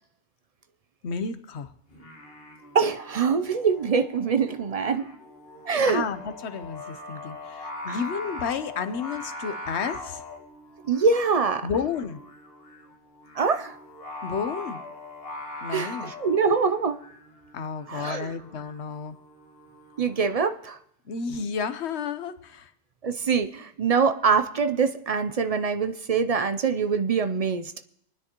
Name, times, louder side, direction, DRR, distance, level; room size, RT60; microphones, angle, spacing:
voice 1, 1.0-1.7 5.9-10.2 11.6-12.2 14.2-14.8 15.6-16.1 17.5-19.2 21.1-22.7, left 6 dB, 85° left, 11 dB, 1.1 m, -31 dB
Singing, 1.9-20.4, left 2 dB, 60° left, 1.9 m, -42 dB
voice 2, 2.7-5.1 5.6-6.0 7.9-8.0 10.8-11.7 13.3-13.8 15.7-17.0 17.9-18.3 20.0-20.8 23.0-27.7, right 5 dB, 50° right, 10 dB, 0.5 m, -24 dB
24.5 x 9.8 x 2.9 m, 0.73 s
omnidirectional pair, 1.1 m